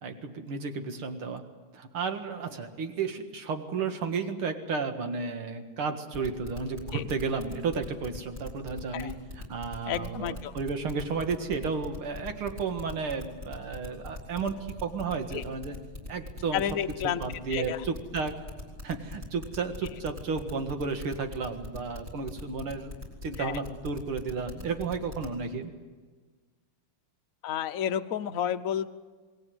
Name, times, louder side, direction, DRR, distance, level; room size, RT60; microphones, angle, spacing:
voice 1, 0.0-1.4 1.7-9.1 9.5-14.6 14.8-15.8 16.1-16.7 17.0-18.4 18.8-22.9 23.2-25.7, right 5 dB, 85° right, 6 dB, 2.7 m, -33 dB
sound 1, 6.1-25.4, left 2 dB, 35° right, 5.5 m, -41 dB
voice 2, 9.9-10.5 15.3-15.4 16.5-17.2 17.5-17.8 23.4-23.6 27.4-28.9, left 10 dB, 55° left, 9 dB, 1.0 m, -31 dB
28.0 x 20.0 x 7.9 m, 1.4 s
omnidirectional pair, 2.3 m